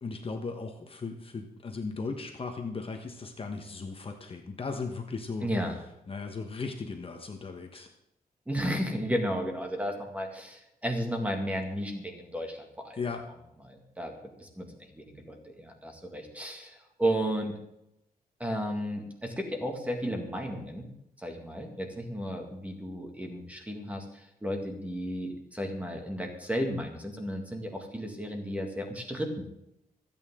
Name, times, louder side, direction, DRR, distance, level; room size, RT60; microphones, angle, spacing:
voice 1, 0.0-5.5 6.1-7.9 13.0-13.2, left 4 dB, 35° left, 4 dB, 1.3 m, -37 dB
voice 2, 5.4-5.8 8.5-13.0 13.6-14.7 14.9-17.6 18.4-20.9 21.2-29.5, equal, 10° right, 3 dB, 2.1 m, -33 dB
26.0 x 8.9 x 3.8 m, 0.82 s
wide cardioid pair, 150°, 16 cm